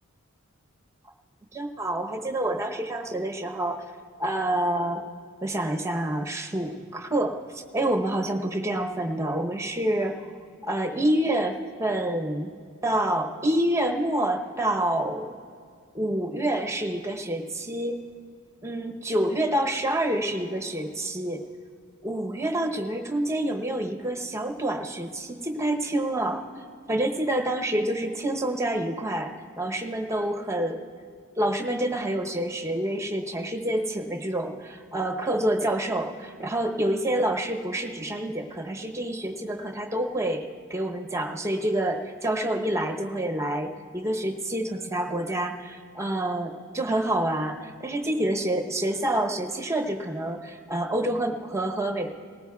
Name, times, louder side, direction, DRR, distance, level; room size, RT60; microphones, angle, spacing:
voice 1, 1.5-3.9 4.2-5.0 5.4-10.3 10.6-12.5 12.8-15.4 15.9-18.0 18.6-21.4 22.0-30.8 31.3-52.1, right 1 dB, 15° right, 2 dB, 0.9 m, -27 dB
19.0 x 18.5 x 2.4 m, 2.2 s
head